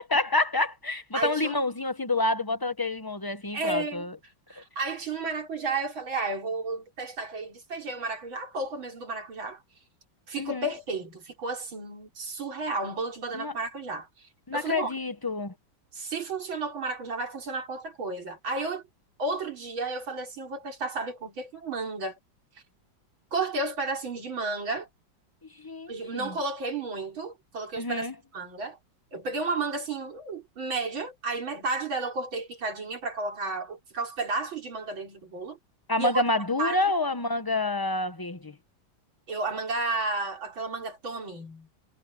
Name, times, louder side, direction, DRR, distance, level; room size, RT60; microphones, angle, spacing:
voice 1, 0.0-4.2 10.4-10.7 13.3-13.5 14.5-15.5 25.6-26.3 27.8-28.1 35.9-38.5, left 2 dB, 30° left, 0.4 m, -28 dB
voice 2, 1.1-1.6 3.5-4.0 4.5-9.6 10.3-14.3 14.5-14.9 15.9-18.8 19.2-22.2 23.3-24.9 25.9-28.8 29.1-35.6 36.0-36.2 36.6-36.8 39.3-41.7, right 3 dB, 85° right, 4.7 m, -32 dB
omnidirectional pair, 2.1 m